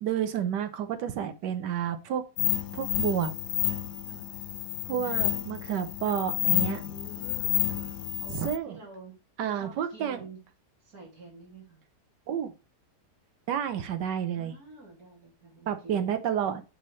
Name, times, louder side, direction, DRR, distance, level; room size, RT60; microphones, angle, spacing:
voice 1, 0.0-2.2 2.7-3.3 4.8-6.8 8.3-8.8 9.4-10.2 12.3-12.5 13.5-14.5 15.7-16.6, right 9 dB, 90° right, 9 dB, 1.5 m, -30 dB
sound 1, 2.4-8.6, left 13 dB, 80° left, 1.2 m, -30 dB
voice 2, 4.9-5.5 6.9-7.9 8.2-9.1 9.5-10.4 10.8-11.8 14.3-16.2, right 3 dB, 60° right, -2 dB, 3.2 m, -49 dB
6.6 x 5.7 x 3.2 m, 0.30 s
omnidirectional pair, 1.8 m